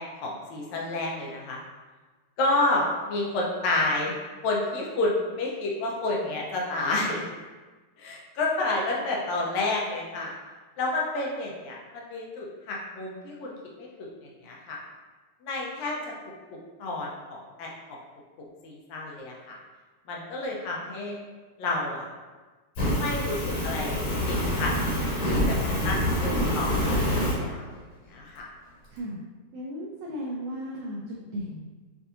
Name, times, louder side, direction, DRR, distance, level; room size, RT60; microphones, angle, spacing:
voice 1, 0.2-1.6 2.4-4.1 4.4-7.3 8.0-10.3 10.8-13.5 13.8-14.1 14.4-14.8 15.4-16.0 16.8-17.7 18.6-19.6 20.1-21.2 21.6-22.1 22.9-24.7 25.0-27.7 28.1-28.4, left 2 dB, 75° left, -3 dB, 1.7 m, -30 dB
Fire, 22.7-27.3, equal, 60° left, 1.8 m, -26 dB
voice 2, 29.5-31.7, equal, 80° right, -4 dB, 1.7 m, -35 dB
7.2 x 2.6 x 2.5 m, 1.3 s
omnidirectional pair, 3.9 m